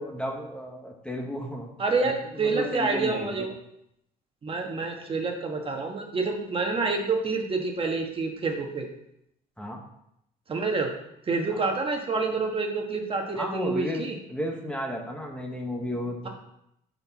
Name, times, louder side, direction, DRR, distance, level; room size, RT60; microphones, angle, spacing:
voice 1, 0.0-1.8 2.0-2.1 2.4-3.5 9.6-9.8 11.5-11.7 13.4-14.0 14.3-16.3, equal, 5° left, 1 dB, 1.1 m, -33 dB
voice 2, 1.8-3.5 4.4-8.9 10.5-10.9 11.3-14.2, right 3 dB, 30° right, 3 dB, 1.3 m, -28 dB
10.5 x 4.5 x 4.1 m, 0.78 s
cardioid pair, 110°, 17 cm